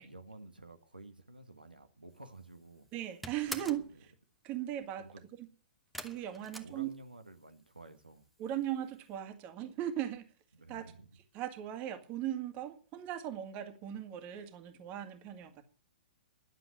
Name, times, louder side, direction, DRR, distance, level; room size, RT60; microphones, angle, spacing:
voice 1, 0.0-2.9 3.9-4.0 5.0-5.3 6.3-8.3 10.5-11.1, right 2 dB, 90° right, 1.6 m, -52 dB
sound 1, 2.2-2.6 2.9-3.9 5.9-7.4 7.7-8.3 8.6-8.7 9.1-9.2, equal, ahead, 1.4 m, -45 dB
voice 2, 2.9-4.1 4.4-5.1 6.0-6.9 8.4-10.2 10.7-10.8 11.3-15.6, right 11 dB, 30° right, 2.1 m, -38 dB
11.5 x 7.5 x 9.6 m
figure-of-eight pair, 115°, 5 cm